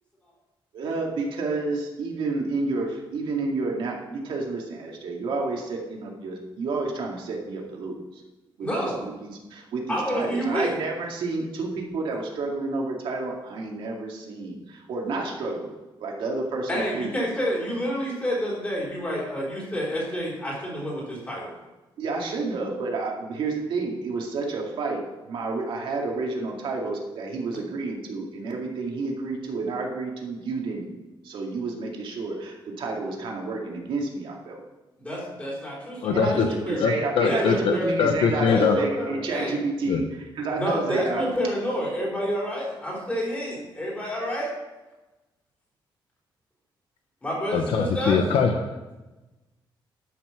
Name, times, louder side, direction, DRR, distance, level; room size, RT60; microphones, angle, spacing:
voice 1, 0.7-8.2 8.6-15.7 16.0-17.1 22.0-30.9 31.2-34.6 36.1-41.2, right 3 dB, 70° right, 0 dB, 2.2 m, -30 dB
voice 2, 8.6-9.0 9.9-10.7 16.7-21.5 35.0-36.4 36.7-36.8 37.2-38.0 38.5-39.6 40.6-44.5 47.2-48.2, equal, 15° left, -4 dB, 3.6 m, -29 dB
voice 3, 36.0-36.5 36.8-37.7 38.0-38.8 39.9-40.0 47.5-48.9, left 6 dB, 85° left, 5 dB, 0.9 m, -22 dB
12.0 x 6.0 x 5.8 m, 1.1 s
wide cardioid pair, 175°, 9 cm